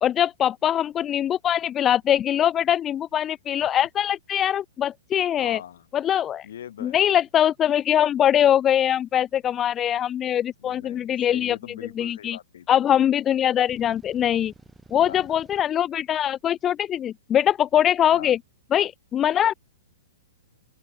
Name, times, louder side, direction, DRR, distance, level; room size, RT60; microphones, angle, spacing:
voice 1, 0.0-5.6 5.9-6.5 6.8-11.6 12.0-12.4 12.7-14.5 14.9-18.4 18.7-19.5, left 10 dB, 20° left, 0.7 m, -22 dB
voice 2, 5.4-5.9 6.4-7.0 10.6-12.8 14.9-15.4 18.1-18.4, left 10 dB, 70° left, 4.3 m, -41 dB
sound 1, 13.7-15.6, right 3 dB, 5° right, 4.4 m, -51 dB
open air
hypercardioid pair, 130°, 0 cm